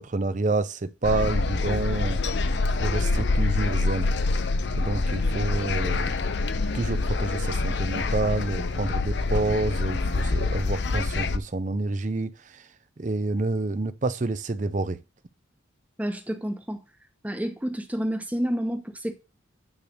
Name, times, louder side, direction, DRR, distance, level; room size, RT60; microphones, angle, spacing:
voice 1, 0.0-2.2 2.8-4.1 4.7-6.1 6.7-12.7 13.0-15.0, right 2 dB, 40° right, 0.5 m, -28 dB
sound 1, 1.0-11.4, left 3 dB, 60° left, 0.6 m, -26 dB
voice 2, 16.0-16.8 17.2-19.1, equal, 5° right, 1.0 m, -29 dB
9.6 x 3.4 x 6.5 m
head